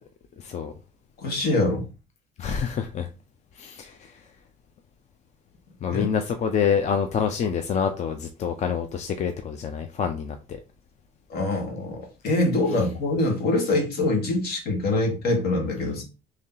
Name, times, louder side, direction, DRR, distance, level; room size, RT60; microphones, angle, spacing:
voice 1, 0.4-0.7 2.4-3.1 3.5-4.2 5.8-10.6, left 7 dB, 45° left, 7 dB, 0.5 m, -27 dB
voice 2, 1.2-1.9 5.9-6.0 11.3-16.0, left 2 dB, 70° left, 1 dB, 1.5 m, -24 dB
3.2 x 2.8 x 3.8 m, 0.31 s
cardioid pair, 110°, 17 cm